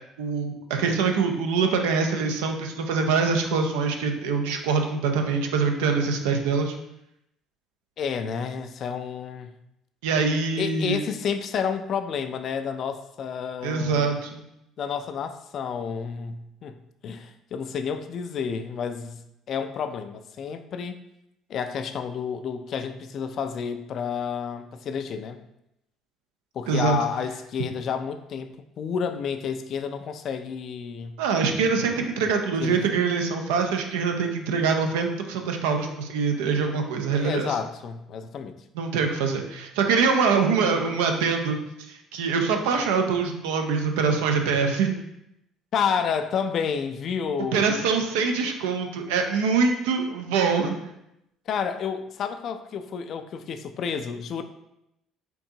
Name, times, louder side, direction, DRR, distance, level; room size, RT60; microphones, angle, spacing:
voice 1, 0.2-6.7 10.0-11.0 13.6-14.4 26.7-27.0 31.2-37.5 38.7-41.6 41.9-44.9 47.5-50.8, right 5 dB, 80° right, 4 dB, 0.4 m, -24 dB
voice 2, 8.0-9.5 10.6-14.1 14.8-16.8 17.0-19.2 19.5-21.0 21.5-25.4 26.5-31.2 32.6-32.9 37.1-38.6 45.7-47.7 51.5-54.4, left 7 dB, 55° left, 8 dB, 0.3 m, -30 dB
4.5 x 2.6 x 2.7 m, 0.83 s
hypercardioid pair, 60°, 0 cm